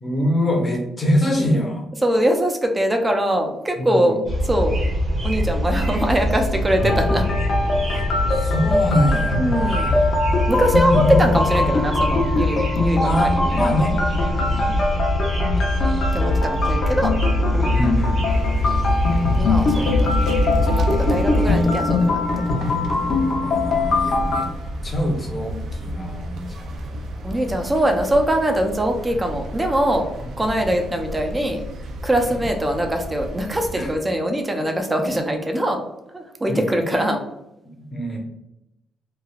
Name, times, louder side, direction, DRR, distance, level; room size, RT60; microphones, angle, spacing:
voice 1, 0.0-1.9 3.8-4.1 7.9-8.1 8.4-9.9 10.9-11.0 13.0-14.0 14.5-14.8 17.7-18.2 19.8-20.0 23.4-24.5 24.8-26.7 30.6-30.7 33.7-33.9 34.5-34.6 36.5-36.6 37.8-38.2, left 1 dB, 25° left, 1 dB, 0.8 m, -24 dB
voice 2, 2.0-4.8 5.2-7.3 9.4-9.9 10.5-13.7 14.0-14.5 16.1-17.2 17.5-17.8 19.4-22.6 24.1-24.4 27.2-30.1 30.4-31.6 32.0-35.8 36.1-37.2, right 1 dB, 15° right, 4 dB, 0.5 m, -22 dB
sound 1, 4.3-21.6, left 1 dB, 35° right, 1.0 m, -23 dB
sound 2, 6.8-24.5, left 3 dB, 60° left, 0.7 m, -22 dB
sound 3, 18.3-34.0, right 1 dB, 70° right, 0.4 m, -33 dB
3.1 x 2.3 x 2.4 m, 0.87 s
cardioid pair, 90°, 0 cm